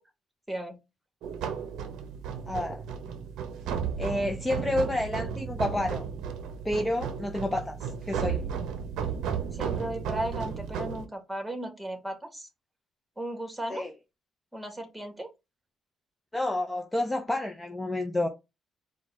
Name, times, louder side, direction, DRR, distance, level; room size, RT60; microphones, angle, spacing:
sound 1, 1.2-11.1, right 7 dB, 90° right, 0.7 m, -34 dB
voice 1, 2.5-2.8 4.0-6.0 6.6-8.4 13.7-13.9 16.3-18.3, left 1 dB, 10° left, 0.7 m, -29 dB
voice 2, 9.5-12.5 13.2-13.8 14.5-15.3, right 1 dB, 10° right, 1.7 m, -35 dB
4.6 x 2.4 x 4.3 m
cardioid pair, 90°, 0 cm